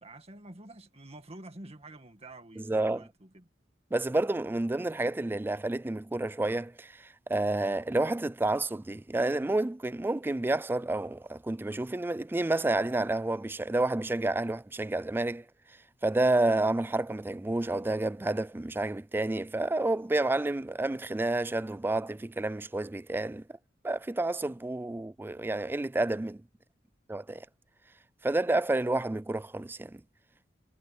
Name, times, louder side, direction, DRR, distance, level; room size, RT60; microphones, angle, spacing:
voice 1, 0.0-3.5, right 2 dB, 35° right, 1.9 m, -48 dB
voice 2, 2.6-3.1 3.9-15.4 16.0-23.4 23.8-26.4 27.1-27.5 28.2-30.0, right 2 dB, 10° right, 0.3 m, -29 dB
head